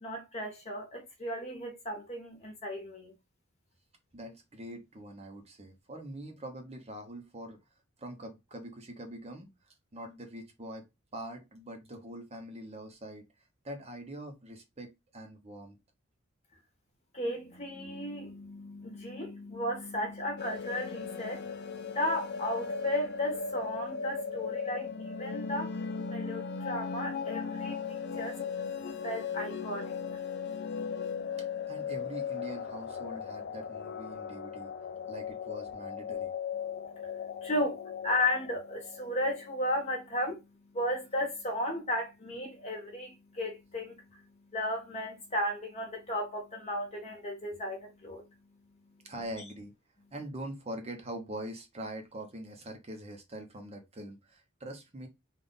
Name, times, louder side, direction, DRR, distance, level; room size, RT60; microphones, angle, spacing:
voice 1, 0.0-3.1 17.1-28.4 29.0-30.2 31.1-31.4 36.6-49.1, left 1 dB, 35° left, 1.3 m, -35 dB
voice 2, 4.1-7.6 8.0-13.3 13.6-15.8 31.4-34.7 35.1-36.3 49.0-49.7 50.1-55.1, right 1 dB, 30° right, 0.8 m, -43 dB
sound 1, 20.4-39.5, left 6 dB, 55° left, 0.5 m, -37 dB
3.5 x 2.4 x 3.9 m
head